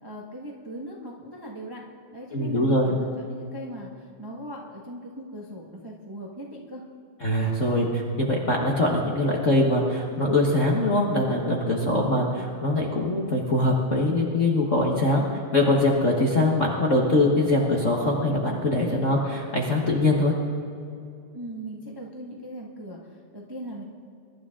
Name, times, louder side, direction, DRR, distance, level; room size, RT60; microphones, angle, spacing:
voice 1, 0.0-1.8 2.1-6.8 11.8-12.0 21.3-23.0 23.3-23.8, right 1 dB, 20° right, -2 dB, 0.6 m, -39 dB
voice 2, 2.3-3.0 7.2-15.2 15.5-20.3, left 1 dB, 40° left, -2 dB, 1.1 m, -23 dB
23.5 x 12.0 x 3.7 m, 2.5 s
omnidirectional pair, 3.4 m